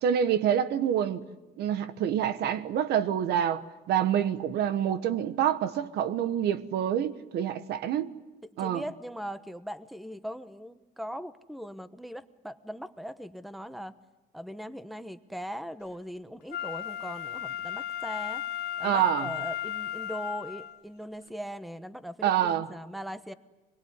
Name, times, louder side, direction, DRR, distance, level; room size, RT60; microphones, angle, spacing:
voice 1, 0.0-1.2 1.6-8.1 8.6-8.8 18.8-19.3 22.2-22.7, right 9 dB, 75° right, 1.4 m, -27 dB
voice 2, 8.6-14.0 14.3-18.4 18.8-23.3, equal, ahead, 1.1 m, -40 dB
Wind instrument woodwind instrument, 16.5-20.8 21.3-21.4, left 11 dB, 75° left, 1.3 m, -35 dB
25.5 x 22.0 x 9.8 m
cardioid pair, 110°, 17 cm